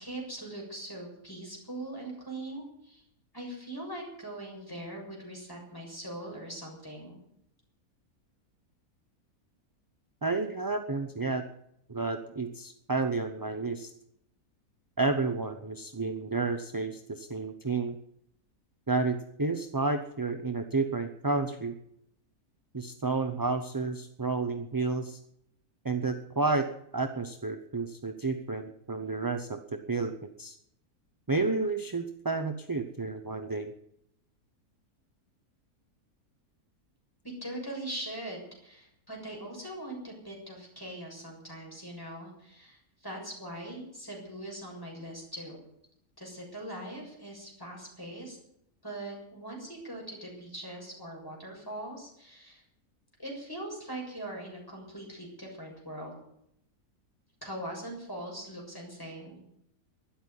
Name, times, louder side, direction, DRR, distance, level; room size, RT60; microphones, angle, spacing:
voice 1, 0.0-3.0 3.3-7.2 37.4-45.6 46.2-48.4 48.8-52.6 53.2-56.1 57.4-59.4, right 1 dB, 15° left, -1 dB, 6.9 m, -41 dB
voice 2, 10.2-11.4 11.9-13.9 15.0-18.0 18.9-21.8 22.7-25.2 25.8-30.6 31.3-33.7, right 3 dB, 20° right, 6 dB, 0.6 m, -31 dB
13.0 x 11.0 x 9.6 m, 0.75 s
omnidirectional pair, 1.6 m